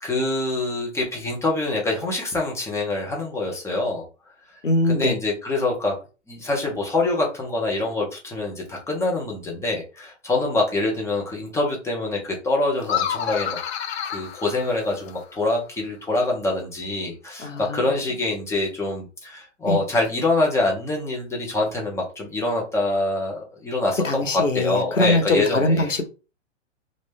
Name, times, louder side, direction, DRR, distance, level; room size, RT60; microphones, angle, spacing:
voice 1, 0.0-4.0 4.9-6.0 6.3-13.6 14.0-25.9, left 2 dB, 5° left, 0.9 m, -25 dB
voice 2, 4.6-5.2 17.4-17.8 19.6-19.8 24.0-26.1, left 2 dB, 90° left, 0.8 m, -22 dB
sound 1, 12.8-15.3, left 9 dB, 60° left, 0.6 m, -29 dB
3.1 x 2.5 x 3.4 m
figure-of-eight pair, 110°, 37 cm